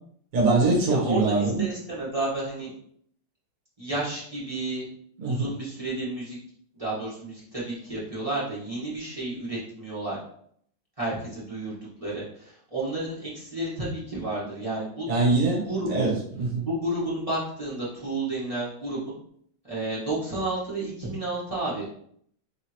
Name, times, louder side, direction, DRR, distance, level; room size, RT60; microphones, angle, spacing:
voice 1, 0.3-1.6 5.2-5.5 15.1-16.6, right 3 dB, 50° right, -2 dB, 1.2 m, -23 dB
voice 2, 0.8-2.7 3.8-4.9 5.2-6.4 6.8-10.2 11.0-15.1 15.6-16.1 16.6-19.2 19.7-22.0, right 2 dB, 20° right, -8 dB, 1.0 m, -31 dB
3.7 x 3.4 x 2.9 m, 0.65 s
omnidirectional pair, 2.3 m